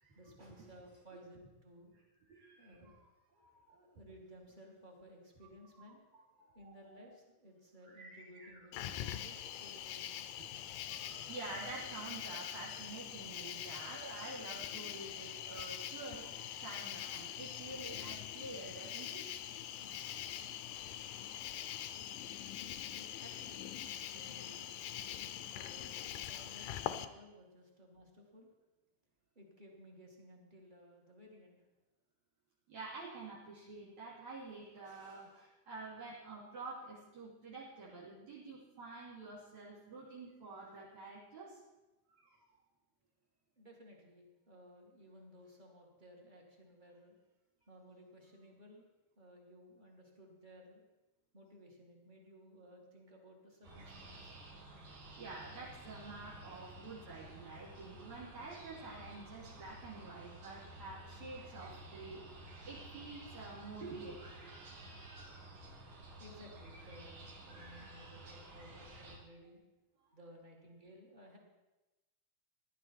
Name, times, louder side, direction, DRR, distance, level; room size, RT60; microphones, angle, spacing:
voice 1, 0.0-1.9 2.6-10.3 22.7-25.1 25.5-28.5 29.4-31.6 43.6-47.2 47.6-48.8 49.2-50.8 51.3-54.4 66.2-69.6 70.1-71.4, equal, 15° right, 0 dB, 1.9 m, -58 dB
voice 2, 2.3-2.9 3.4-3.7 5.7-5.8 6.4-7.0 7.9-8.6 9.0-9.2 10.4-10.5 10.9-19.2 32.7-41.6 42.2-42.4 55.2-62.2 62.6-65.5 67.5-68.0, right 3 dB, 65° right, -7 dB, 3.8 m, -49 dB
Cricket, 8.7-27.1, left 11 dB, 80° left, 2.1 m, -43 dB
sound 1, 53.6-69.2, right 1 dB, 90° right, 4.3 m, -53 dB
16.0 x 11.5 x 4.5 m, 1.0 s
omnidirectional pair, 3.7 m